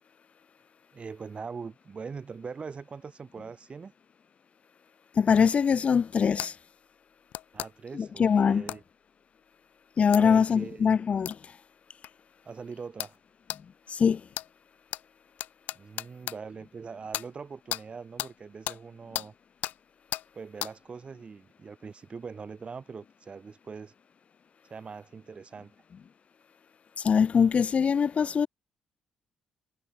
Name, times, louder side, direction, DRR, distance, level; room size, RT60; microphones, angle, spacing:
voice 1, 0.9-3.9 7.5-8.8 10.1-10.9 12.4-13.2 15.7-19.3 20.3-23.9 24.6-25.7, right 5 dB, 40° right, 7.5 m, -42 dB
voice 2, 5.1-6.6 7.9-8.6 10.0-11.6 13.9-14.2 27.0-28.5, left 6 dB, 45° left, 1.5 m, -23 dB
sound 1, 6.4-6.5 7.3-7.7 8.7-8.8 10.1-10.2 11.3-11.4 12.0-12.1 13.0-13.2 13.5-13.6 14.3-14.5 14.9-15.0 15.4-16.4 17.1-17.3 17.7-17.8 18.2-18.3 18.7-18.8 19.1-19.3 19.6-19.8 20.1-20.3 20.6-20.7, left 14 dB, 70° left, 5.2 m, -34 dB
hypercardioid pair, 45°, 3 cm